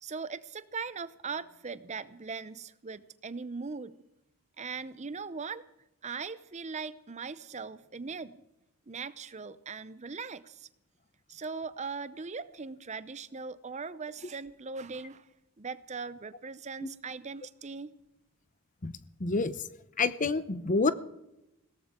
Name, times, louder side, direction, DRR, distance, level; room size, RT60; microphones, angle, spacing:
voice 1, 0.0-3.9 4.6-5.6 6.0-8.4 8.9-10.7 11.3-15.3 15.6-17.9, right 5 dB, 30° right, 15 dB, 0.7 m, -40 dB
voice 2, 19.2-19.6 20.0-20.9, left 3 dB, 35° left, 14 dB, 0.7 m, -28 dB
21.0 x 17.5 x 3.7 m, 0.89 s
head